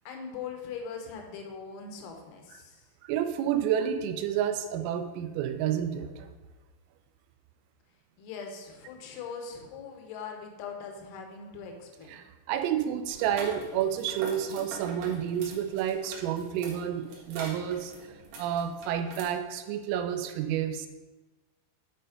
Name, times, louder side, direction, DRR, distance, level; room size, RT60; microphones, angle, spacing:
voice 1, 0.1-2.8 8.2-12.2, left 6 dB, 90° left, 3 dB, 3.8 m, -41 dB
voice 2, 3.0-6.3 12.1-17.9 18.4-20.9, right 9 dB, 90° right, 7 dB, 3.3 m, -30 dB
sound 1, 13.1-19.2, right 2 dB, 65° right, 2.1 m, -44 dB
10.0 x 4.3 x 5.1 m, 1.1 s
omnidirectional pair, 5.9 m